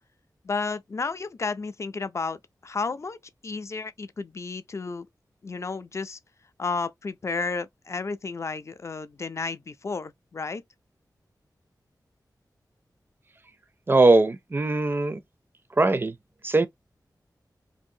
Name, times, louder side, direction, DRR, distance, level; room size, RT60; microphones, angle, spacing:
voice 1, 0.4-3.2 3.4-5.1 5.4-6.2 6.6-10.6, left 4 dB, 40° left, 0.3 m, -32 dB
voice 2, 13.9-15.2 15.8-16.1 16.4-16.7, right 2 dB, 30° right, 0.4 m, -20 dB
2.6 x 2.6 x 2.6 m
wide cardioid pair, 105°, 7 cm